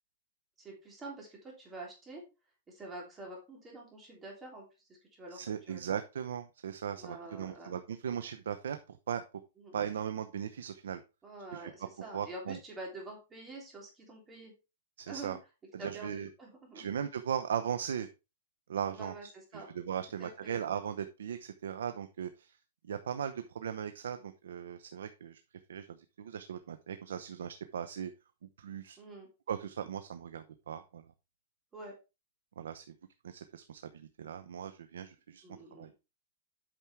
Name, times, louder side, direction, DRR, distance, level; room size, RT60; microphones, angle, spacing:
voice 1, 0.6-2.2 2.7-4.6 5.1-5.4 5.7-5.8 7.0-7.7 9.6-9.8 11.2-14.5 15.0-15.4 15.8-16.9 18.9-19.7 20.2-20.6 29.0-29.3 31.7-31.9 35.4-35.9, right 2 dB, 15° right, -1 dB, 3.2 m, -47 dB
voice 2, 5.3-9.2 9.7-11.0 11.5-11.7 12.0-12.6 15.0-15.4 15.7-16.3 16.7-18.1 18.7-19.1 19.5-22.6 22.8-25.4 25.7-28.1 28.4-29.0 29.5-31.0 32.6-32.8 33.2-35.4 35.7-35.9, right 8 dB, 85° right, 9 dB, 0.8 m, -38 dB
8.9 x 6.1 x 3.4 m, 0.28 s
hypercardioid pair, 160°, 0 cm